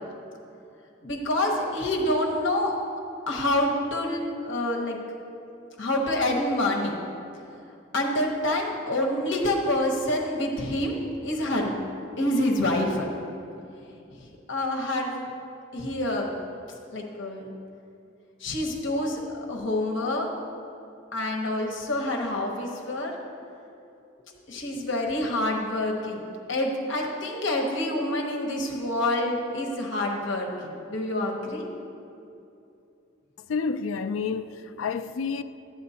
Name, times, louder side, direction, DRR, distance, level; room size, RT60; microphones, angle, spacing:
voice 1, 1.0-2.7 3.3-5.0 5.8-6.9 7.9-11.7 12.2-13.1 14.5-15.3 15.7-16.3 16.9-17.5 18.4-19.2 19.5-20.3 21.1-23.1 24.5-26.2 26.5-31.6, left 1 dB, 65° left, 1.0 m, -27 dB
voice 2, 33.5-35.4, left 5 dB, 85° left, 0.4 m, -29 dB
12.5 x 8.5 x 2.8 m
head